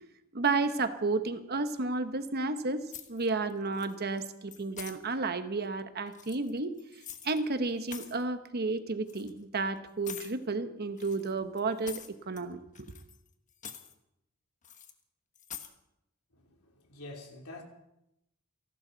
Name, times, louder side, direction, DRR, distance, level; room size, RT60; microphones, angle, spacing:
voice 1, 0.3-6.7 7.2-12.9, right 3 dB, 45° right, 1.1 m, -32 dB
sound 1, 2.9-3.5 3.8-4.2 4.5-5.0 6.1-7.4 7.7-8.2 9.1-9.3 10.0-10.3 11.0-12.4 12.7-13.3 13.5-13.9 14.6-14.9 15.3-15.7, left 8 dB, 35° left, 1.3 m, -45 dB
voice 2, 16.3-17.6, left 2 dB, 90° left, 3.1 m, -47 dB
28.5 x 12.0 x 4.0 m
head